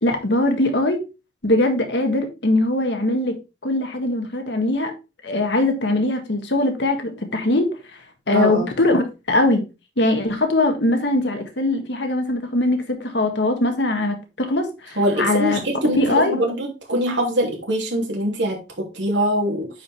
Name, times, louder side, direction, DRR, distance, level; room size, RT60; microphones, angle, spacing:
voice 1, 0.0-1.0 1.4-3.4 3.6-4.9 5.2-7.7 8.3-9.6 10.0-15.6 15.9-16.4, left 2 dB, 65° left, 5 dB, 1.7 m, -21 dB
voice 2, 8.3-8.7 15.0-19.7, equal, 75° right, 0 dB, 3.0 m, -23 dB
9.8 x 5.1 x 3.5 m, 0.28 s
head